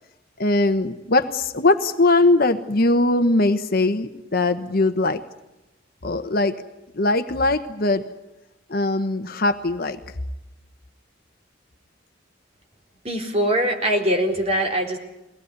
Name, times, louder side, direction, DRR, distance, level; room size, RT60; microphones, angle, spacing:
voice 1, 0.4-5.2 6.0-6.5 6.9-8.0 8.7-10.0, left 2 dB, 50° left, 9 dB, 1.2 m, -20 dB
voice 2, 13.0-15.0, equal, 35° right, 2 dB, 3.9 m, -22 dB
22.5 x 18.5 x 9.6 m, 0.95 s
head